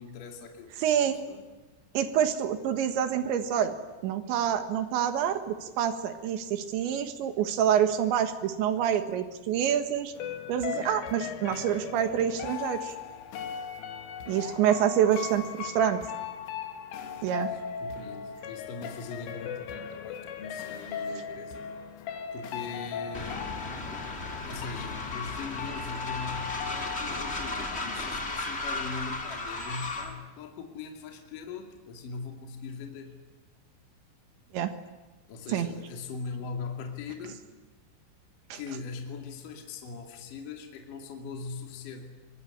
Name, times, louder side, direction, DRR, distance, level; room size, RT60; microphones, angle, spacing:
voice 1, 0.0-1.5 14.3-14.5 17.4-21.7 22.3-23.4 24.5-33.1 35.3-37.5 38.5-42.2, left 4 dB, 45° left, 3 dB, 3.5 m, -41 dB
voice 2, 0.8-1.2 2.0-3.7 4.0-10.1 10.5-13.0 14.3-16.0 17.2-17.5 34.5-34.7 35.5-35.7 38.5-38.6, right 9 dB, 70° right, 9 dB, 3.5 m, -27 dB
sound 1, 10.2-28.8 29.1-29.2, left 7 dB, 75° left, 4.2 m, -38 dB
Train, 23.1-30.2, left 2 dB, 25° left, 1.5 m, -35 dB
24.0 x 23.0 x 10.0 m, 1.2 s
omnidirectional pair, 6.0 m